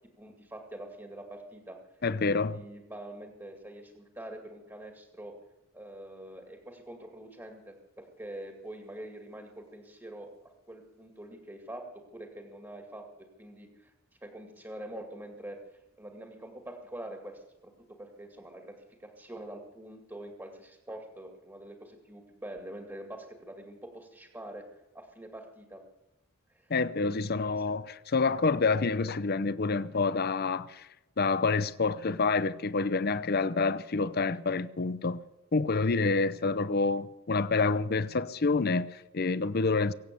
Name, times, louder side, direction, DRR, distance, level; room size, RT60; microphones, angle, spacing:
voice 1, 0.2-1.8 2.3-5.3 5.7-13.1 13.4-13.9 14.2-17.7 18.0-18.7 19.0-24.6 24.9-25.8 26.5-26.7 27.0-27.6, right 1 dB, 15° right, 2.2 m, -45 dB
voice 2, 2.0-2.6 26.7-30.9 31.2-35.2 35.5-39.9, left 4 dB, 50° left, 0.7 m, -28 dB
24.0 x 8.4 x 6.8 m
head